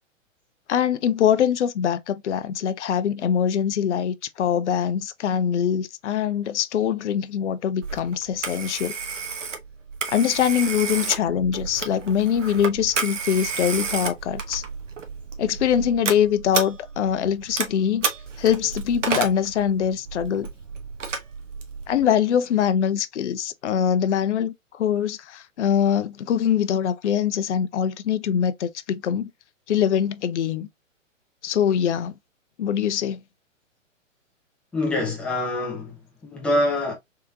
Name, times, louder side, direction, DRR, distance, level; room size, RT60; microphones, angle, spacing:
voice 1, 0.7-9.0 10.1-14.6 15.4-18.1 18.4-20.5 21.9-29.3 29.7-30.7 31.4-32.1 32.6-33.2, left 8 dB, 60° left, 0.5 m, -23 dB
Telephone, 7.8-22.1, right 5 dB, 65° right, 1.0 m, -31 dB
voice 2, 34.7-36.9, left 1 dB, 5° left, 0.5 m, -25 dB
3.5 x 3.1 x 2.3 m
figure-of-eight pair, 120°, 39 cm